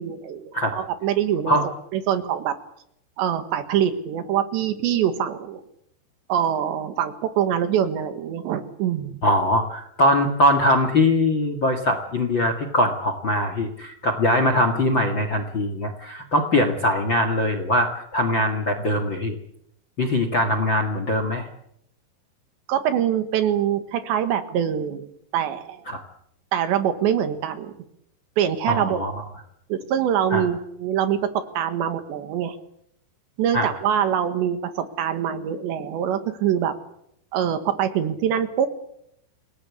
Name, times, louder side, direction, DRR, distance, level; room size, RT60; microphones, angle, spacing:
voice 1, 0.0-1.6 1.9-2.6 3.2-5.6 6.3-9.2 22.7-25.8 26.5-27.7 28.4-29.0 29.7-32.6 33.4-36.7 37.3-38.7, right 9 dB, 80° right, 10 dB, 3.9 m, -24 dB
voice 2, 9.2-19.4 20.0-21.5 25.9-26.0 28.7-29.2 30.3-30.4 33.5-33.7, left 1 dB, 45° left, 8 dB, 1.7 m, -22 dB
28.5 x 18.5 x 8.5 m, 0.75 s
omnidirectional pair, 5.2 m